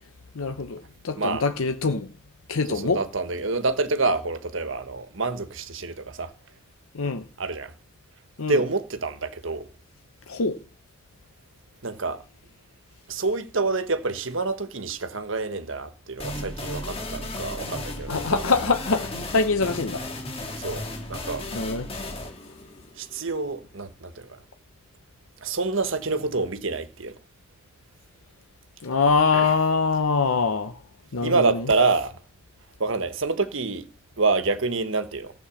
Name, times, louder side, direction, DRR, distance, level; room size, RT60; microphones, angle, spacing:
voice 1, 0.3-2.1 2.5-3.0 6.9-7.3 8.4-8.6 10.3-10.6 17.9-20.1 21.5-21.9 28.8-30.8 31.1-31.7, left 4 dB, 85° left, 0.9 m, -24 dB
voice 2, 2.7-6.3 7.4-7.7 8.5-9.6 11.8-12.2 13.1-18.5 20.6-21.5 23.0-24.3 25.4-27.1 29.3-29.5 31.2-32.1 32.8-33.9 34.2-35.3, right 3 dB, 70° right, 1.4 m, -27 dB
sound 1, 16.2-23.7, left 1 dB, 25° left, 2.2 m, -35 dB
14.5 x 8.0 x 7.1 m
head